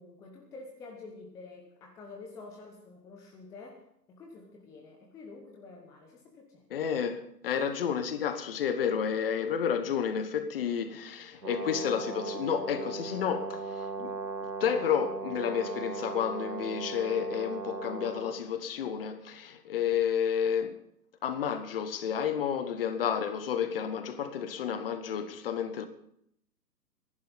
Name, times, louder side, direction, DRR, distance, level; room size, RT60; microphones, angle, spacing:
voice 1, 0.0-3.8 4.1-6.7 7.5-7.7, left 3 dB, 5° left, 0.8 m, -48 dB
voice 2, 6.7-20.8 21.2-25.9, left 8 dB, 35° left, 1.3 m, -31 dB
Brass instrument, 11.4-18.4, right 3 dB, 80° right, 1.7 m, -38 dB
25.0 x 11.0 x 4.0 m
figure-of-eight pair, 125°, 50 cm